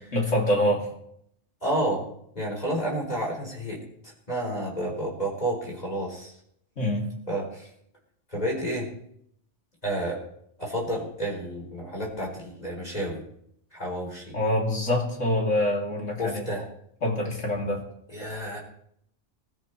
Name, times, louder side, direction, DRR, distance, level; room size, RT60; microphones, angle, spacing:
voice 1, 0.1-0.9 6.8-7.1 14.3-16.5 17.0-17.8, left 1 dB, 85° left, -1 dB, 3.6 m, -25 dB
voice 2, 1.6-2.0 2.4-3.8 4.3-6.3 7.3-7.7 8.3-8.9 9.8-10.2 10.6-13.2 13.7-14.3 16.2-16.7 18.1-18.6, right 1 dB, 35° left, -2 dB, 4.4 m, -30 dB
22.0 x 13.5 x 3.3 m, 0.71 s
omnidirectional pair, 1.2 m